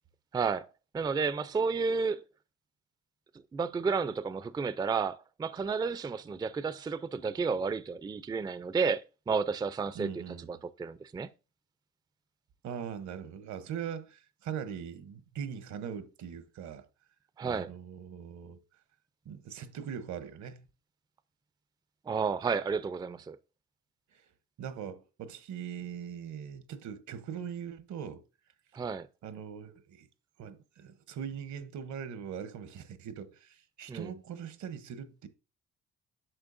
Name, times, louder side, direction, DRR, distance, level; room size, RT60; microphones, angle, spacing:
voice 1, 0.3-0.7 0.9-2.2 3.5-10.1 10.5-11.3 17.4-17.7 22.1-23.4 28.7-29.1 33.9-34.1, right 5 dB, 15° right, 0.3 m, -31 dB
voice 2, 9.9-10.5 12.6-16.9 17.4-18.6 19.2-20.7 24.1-24.2 24.6-28.2 29.2-30.1 30.4-35.3, right 8 dB, 70° right, 0.9 m, -41 dB
8.9 x 6.4 x 2.5 m
cardioid pair, 90°, 30 cm